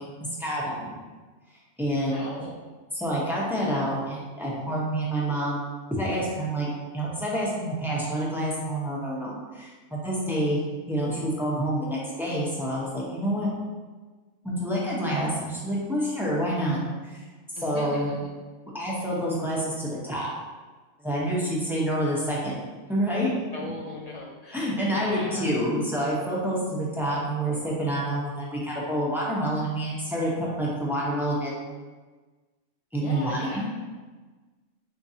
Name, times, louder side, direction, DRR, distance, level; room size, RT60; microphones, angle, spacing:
voice 1, 0.4-0.9 1.8-2.2 2.9-5.6 5.9-6.7 6.9-10.6 10.9-13.5 14.4-16.8 17.0-17.2 17.6-18.1 18.7-20.3 21.0-22.5 22.9-23.3 23.6-23.7 24.5-31.7 32.9-33.7, equal, ahead, -6 dB, 0.8 m, -28 dB
voice 2, 2.1-2.6 17.6-18.3 23.5-24.7 25.0-25.6 33.0-33.7, left 3 dB, 80° left, -2 dB, 0.3 m, -38 dB
4.7 x 3.6 x 2.8 m, 1.3 s
omnidirectional pair, 1.2 m